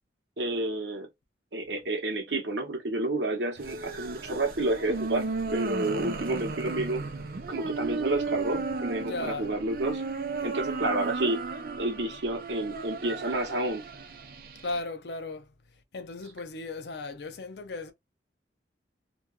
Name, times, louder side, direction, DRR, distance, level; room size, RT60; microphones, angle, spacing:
voice 1, 0.4-1.1 1.5-5.3 5.5-7.0 7.5-10.0 10.4-11.4 11.8-13.8, right 2 dB, 85° right, 0.9 m, -30 dB
sound 1, 3.6-14.8, right 4 dB, 55° right, 0.5 m, -34 dB
voice 2, 9.0-9.5 14.6-15.5 15.9-17.9, left 3 dB, 70° left, 0.5 m, -36 dB
2.8 x 2.3 x 2.3 m
head